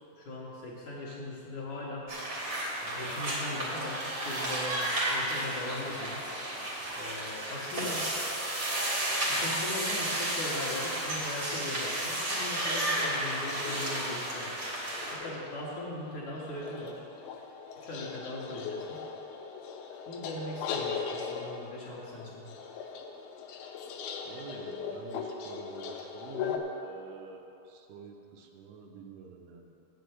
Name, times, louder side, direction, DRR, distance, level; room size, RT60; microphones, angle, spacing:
voice 1, 0.2-2.1 2.8-4.8 5.1-6.2 6.5-6.7 7.0-8.1 9.2-14.5 15.1-17.0 17.3-17.4 17.8-19.0 20.1-22.5, left 2 dB, 60° left, -5 dB, 2.3 m, -39 dB
sound 1, 2.1-15.1, right 1 dB, 60° right, 0.9 m, -32 dB
sound 2, 11.5-26.6, left 6 dB, 85° left, 2.7 m, -40 dB
voice 2, 24.2-29.7, right 5 dB, 80° right, 2 dB, 2.6 m, -47 dB
8.2 x 6.8 x 7.8 m, 2.8 s
omnidirectional pair, 4.5 m